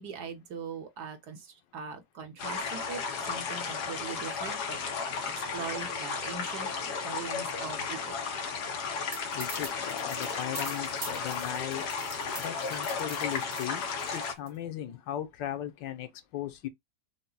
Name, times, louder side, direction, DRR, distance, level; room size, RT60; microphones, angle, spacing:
voice 1, 0.0-8.2, right 6 dB, 65° right, 1.4 m, -41 dB
sound 1, 2.4-14.3, left 5 dB, 65° left, 1.5 m, -34 dB
sound 2, 9.1-14.5, right 3 dB, 30° right, 0.7 m, -43 dB
voice 2, 9.3-11.8 12.4-13.8 14.1-16.7, left 11 dB, 90° left, 1.4 m, -37 dB
5.8 x 2.1 x 3.9 m
omnidirectional pair, 1.9 m